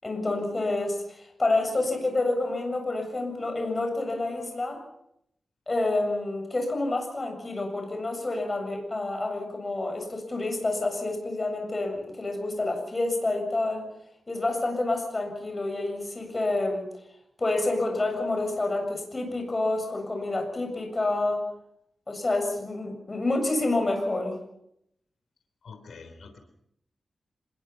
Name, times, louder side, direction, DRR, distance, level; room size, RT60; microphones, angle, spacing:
voice 1, 0.0-4.8 5.7-13.8 14.3-16.8 17.4-21.4 22.1-24.4, left 2 dB, 30° left, 4 dB, 7.4 m, -28 dB
voice 2, 25.6-26.4, left 4 dB, 85° left, 7 dB, 3.5 m, -45 dB
27.0 x 21.5 x 5.8 m, 0.75 s
wide cardioid pair, 120°, 0 cm